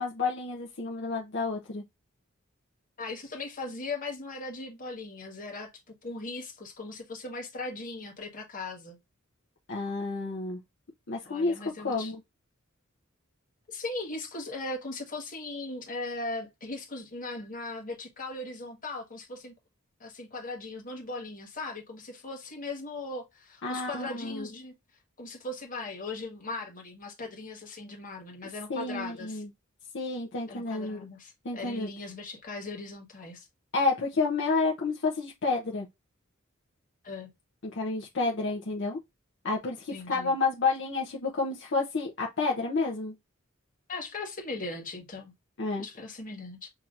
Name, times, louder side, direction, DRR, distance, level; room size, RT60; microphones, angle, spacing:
voice 1, 0.0-1.8 9.7-10.6 11.1-12.2 23.6-24.5 28.7-29.5 29.9-31.1 31.4-31.9 33.7-35.9 37.7-39.0 39.4-43.1 45.6-45.8, left 3 dB, 60° left, 0.7 m, -30 dB
voice 2, 3.0-9.0 11.2-12.1 13.7-19.5 20.0-24.7 25.2-29.4 30.5-33.5 37.0-37.3 39.9-40.3 43.9-45.3 45.8-46.7, left 2 dB, 40° left, 1.5 m, -38 dB
5.9 x 2.8 x 2.5 m
head